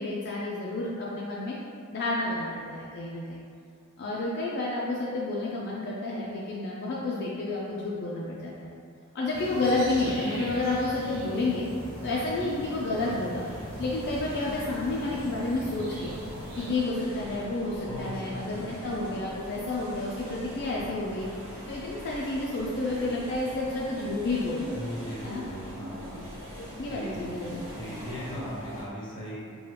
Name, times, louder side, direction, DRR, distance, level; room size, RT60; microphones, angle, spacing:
voice 1, 0.0-1.6 1.9-3.4 4.0-8.7 9.1-11.7 12.0-13.5 13.8-16.2 16.5-21.3 21.7-24.8 25.2-25.4 26.6-27.6 27.9-28.0, left 2 dB, 50° left, -5 dB, 0.4 m, -30 dB
sound 1, 9.3-16.7, equal, 45° right, 0.8 m, -40 dB
sound 2, 11.7-28.8, equal, 65° right, 1.2 m, -42 dB
voice 2, 17.9-18.8 24.7-26.2 26.9-27.2 27.6-29.5, equal, 20° left, -6 dB, 0.9 m, -39 dB
4.5 x 2.2 x 3.3 m, 2.3 s
head